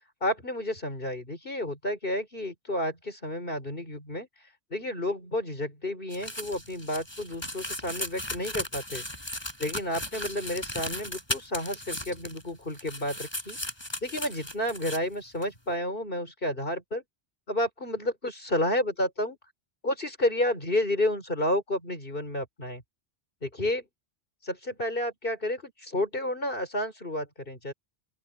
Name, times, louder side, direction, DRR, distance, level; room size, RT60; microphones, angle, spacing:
voice 1, 0.2-4.3 4.7-9.1 9.6-13.6 14.0-17.0 17.5-19.4 19.8-22.8 23.4-23.9 24.4-27.7, left 1 dB, 60° left, 6.0 m, -31 dB
sound 1, 6.1-12.5 12.7-15.0 15.4-15.5, left 1 dB, 25° left, 5.8 m, -36 dB
open air
omnidirectional pair, 1.0 m